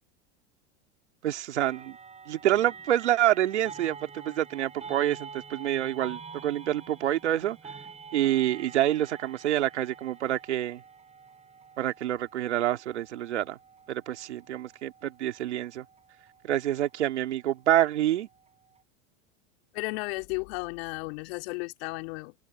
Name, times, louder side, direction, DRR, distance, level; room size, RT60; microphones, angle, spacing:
voice 1, 1.2-2.0 2.3-4.0 4.2-7.6 8.1-10.8 11.8-13.6 13.9-15.8 16.4-18.3, right 12 dB, 85° right, 2.8 m, -27 dB
sound 1, 1.6-18.8, right 5 dB, 20° right, 5.2 m, -48 dB
voice 2, 19.7-22.3, left 27 dB, 60° left, 2.4 m, -34 dB
open air
hypercardioid pair, 100°, 34 cm